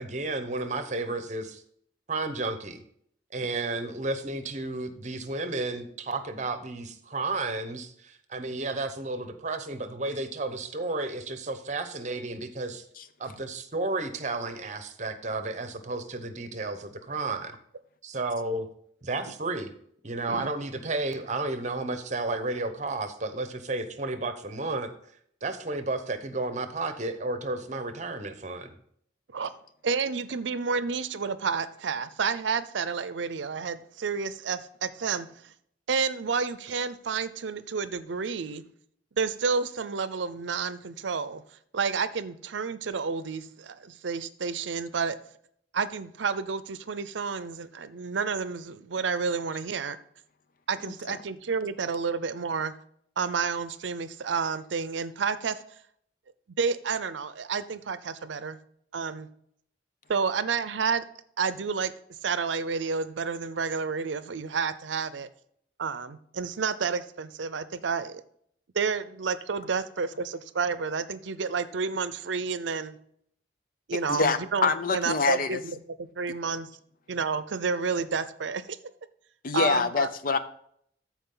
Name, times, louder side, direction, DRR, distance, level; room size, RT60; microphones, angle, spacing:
voice 1, 0.0-1.6 2.1-2.8 3.3-12.8 13.2-17.6 18.0-18.7 19.0-19.7 20.0-24.9 25.4-28.7, right 2 dB, 40° right, 9 dB, 0.9 m, -32 dB
voice 2, 29.8-35.5 35.9-38.6 39.2-41.4 41.7-45.2 45.7-50.0 50.7-52.7 53.2-55.6 56.6-58.6 58.9-59.3 60.1-61.0 61.4-61.9 62.2-65.3 65.8-68.2 68.7-73.0 73.9-76.7 77.1-78.6 79.5-80.1, right 5 dB, 80° right, 14 dB, 0.6 m, -30 dB
voice 3, 74.1-75.6 79.4-80.4, left 4 dB, 50° left, 11 dB, 0.6 m, -25 dB
14.0 x 4.6 x 3.8 m, 0.66 s
head